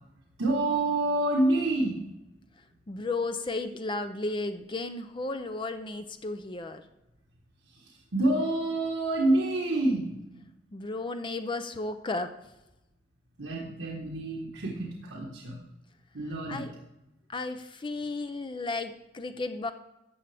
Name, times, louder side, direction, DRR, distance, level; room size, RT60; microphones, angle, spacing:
voice 1, 0.4-2.0 7.8-10.4 13.4-15.6 16.1-16.6, right 2 dB, 90° right, -3 dB, 1.4 m, -28 dB
voice 2, 2.9-6.8 10.7-12.3 16.5-16.7 17.3-19.7, left 3 dB, 25° left, 8 dB, 0.5 m, -34 dB
12.5 x 7.7 x 3.4 m, 0.92 s
head